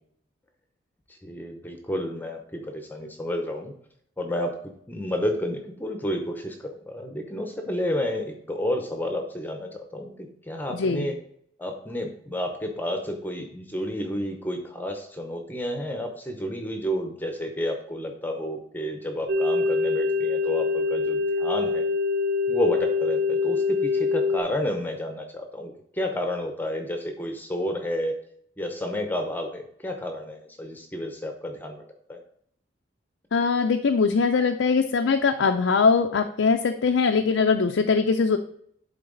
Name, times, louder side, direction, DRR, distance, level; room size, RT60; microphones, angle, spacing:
voice 1, 1.1-3.7 4.2-4.5 4.9-11.1 11.6-21.9 22.5-28.2 28.6-31.8 32.1-32.2, left 1 dB, 10° left, 4 dB, 0.8 m, -31 dB
voice 2, 10.7-11.1 33.3-38.4, left 5 dB, 85° left, 5 dB, 0.5 m, -21 dB
sound 1, 19.3-24.4, left 4 dB, 55° right, 0.4 m, -24 dB
11.0 x 4.0 x 3.9 m, 0.66 s
head